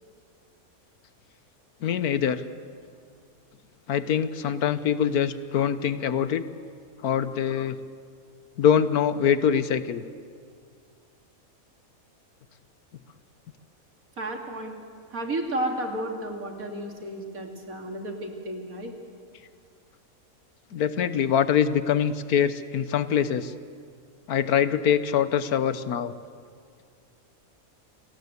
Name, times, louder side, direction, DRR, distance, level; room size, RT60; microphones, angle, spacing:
voice 1, 1.8-2.4 3.9-6.4 7.0-7.8 8.6-10.0 20.7-23.5 24.3-26.1, left 8 dB, 85° left, 13 dB, 1.5 m, -24 dB
voice 2, 14.2-14.8 15.1-18.9, right 1 dB, 70° right, 2 dB, 3.1 m, -32 dB
28.5 x 19.5 x 8.1 m, 2.2 s
omnidirectional pair, 1.5 m